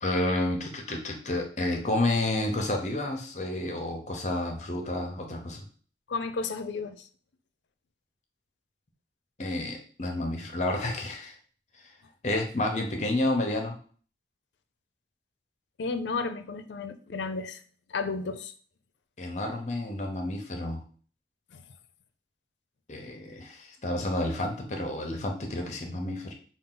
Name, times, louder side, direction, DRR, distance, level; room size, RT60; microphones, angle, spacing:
voice 1, 0.0-5.6 9.4-11.3 12.2-13.7 19.2-20.8 22.9-26.3, left 1 dB, 40° left, 3 dB, 0.8 m, -30 dB
voice 2, 6.1-7.1 15.8-17.6 17.9-18.5 21.5-21.6, left 4 dB, 80° left, 11 dB, 0.5 m, -33 dB
5.5 x 2.4 x 3.8 m, 0.43 s
head